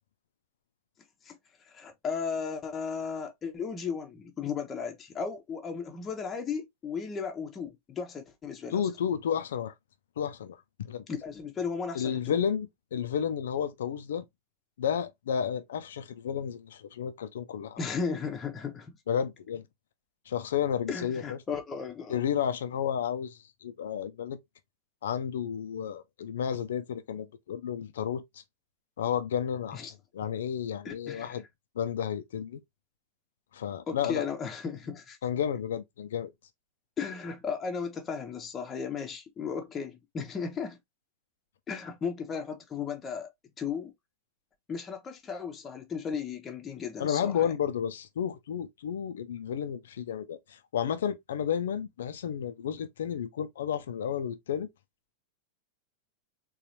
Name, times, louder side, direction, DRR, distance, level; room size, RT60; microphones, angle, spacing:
voice 1, 1.7-8.9 11.1-12.4 17.8-19.0 20.9-22.2 29.7-29.9 30.8-31.4 33.9-35.2 37.0-40.8 41.7-43.3 43.6-43.9 44.7-47.5, left 6 dB, 20° left, 0.7 m, -35 dB
voice 2, 8.7-9.7 10.2-11.0 11.9-14.2 14.8-17.8 19.1-19.6 20.3-21.4 22.1-24.4 25.0-28.2 29.0-29.9 30.1-31.4 31.8-32.6 33.5-34.3 35.2-36.3 47.0-54.7, left 8 dB, 60° left, 0.4 m, -32 dB
3.9 x 2.4 x 2.8 m
figure-of-eight pair, 90°, 0 cm